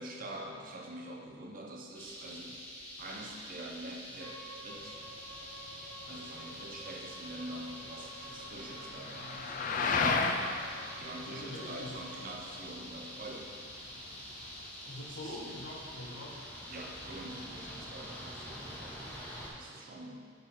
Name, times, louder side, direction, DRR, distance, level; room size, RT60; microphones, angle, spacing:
voice 1, 0.0-2.6 3.0-5.0 6.0-9.6 9.9-10.4 11.0-13.6 15.1-15.4 16.7-19.1 19.5-20.3, right 1 dB, 45° right, 0 dB, 0.6 m, -45 dB
sound 1, 1.9-19.5, equal, 10° left, 0.9 m, -46 dB
Bowed string instrument, 4.1-12.2, right 1 dB, 70° right, 1.0 m, -52 dB
sound 2, 4.8-14.7, left 4 dB, 45° left, 0.3 m, -37 dB
voice 2, 11.3-12.0 14.8-16.4, left 1 dB, 75° left, -1 dB, 0.9 m, -44 dB
6.8 x 3.7 x 4.1 m, 2.1 s
head